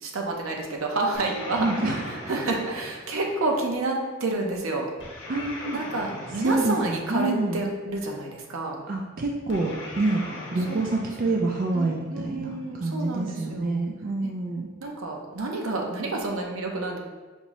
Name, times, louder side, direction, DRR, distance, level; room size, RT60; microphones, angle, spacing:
voice 1, 0.0-4.9 5.7-8.8 10.7-11.4 11.7-13.8 14.2-14.3 14.8-17.0, right 2 dB, 80° right, 1 dB, 0.6 m, -29 dB
sound 1, 1.1-3.8 5.0-7.6 9.5-12.1, left 1 dB, 60° left, 0.7 m, -40 dB
voice 2, 1.6-2.0 5.3-5.8 6.4-7.6 8.9-10.2 10.5-14.7, right 2 dB, 40° right, 0 dB, 0.3 m, -27 dB
5.2 x 2.6 x 3.0 m, 1.3 s
head